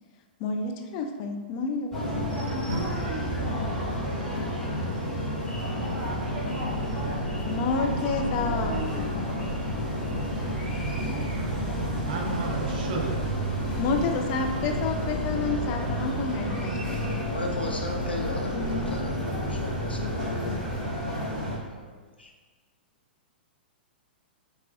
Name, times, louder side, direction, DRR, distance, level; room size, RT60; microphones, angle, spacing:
voice 1, 0.4-1.9 2.4-2.7 7.4-8.7 13.8-17.1 18.5-18.9, left 4 dB, 35° left, 4 dB, 0.3 m, -29 dB
sound 1, 1.9-21.6, equal, 10° left, 1.1 m, -30 dB
voice 2, 12.1-13.2, right 4 dB, 50° right, 1 dB, 0.6 m, -33 dB
voice 3, 17.2-20.9 21.6-22.3, left 2 dB, 80° left, 1 dB, 0.6 m, -37 dB
4.5 x 2.9 x 2.4 m, 1.4 s
figure-of-eight pair, 105°, 5 cm